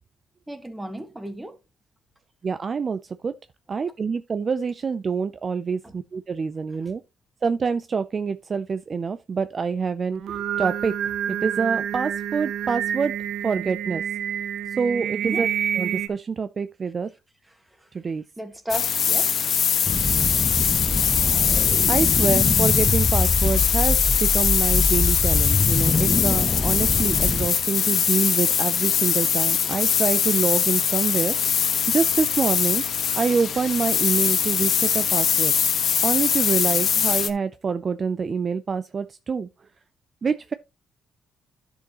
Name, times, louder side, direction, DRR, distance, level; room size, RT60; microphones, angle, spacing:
voice 1, 0.5-1.5 15.2-15.5 18.4-19.4, equal, 10° right, 1.7 m, -34 dB
voice 2, 2.4-3.3 3.7-7.0 7.4-10.9 11.4-13.1 13.4-14.0 14.8-15.5 15.8-17.1 17.9-18.2 20.2-20.3 21.9-31.4 31.9-32.8 33.2-35.5 36.0-39.5 40.2-40.5, right 5 dB, 40° right, 0.5 m, -26 dB
Singing, 10.1-16.1, right 9 dB, 70° right, 0.8 m, -28 dB
sound 1, 18.7-37.3, left 8 dB, 60° left, 1.2 m, -22 dB
sound 2, 19.9-27.5, left 3 dB, 25° left, 0.5 m, -24 dB
11.0 x 6.3 x 3.0 m
cardioid pair, 90°, 0 cm